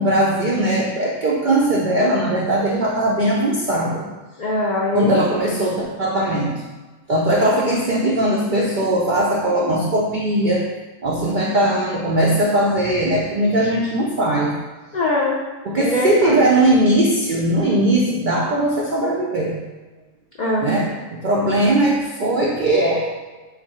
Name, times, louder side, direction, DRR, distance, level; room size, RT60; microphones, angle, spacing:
voice 1, 0.0-4.0 4.9-6.5 7.1-10.7 11.0-14.5 15.6-19.6 20.6-23.1, right 1 dB, 80° right, -3 dB, 0.4 m, -19 dB
voice 2, 4.4-5.2 14.9-15.4 15.7-16.5 20.4-20.7, left 1 dB, 80° left, -4 dB, 0.4 m, -21 dB
4.1 x 2.7 x 4.1 m, 1.2 s
omnidirectional pair, 1.5 m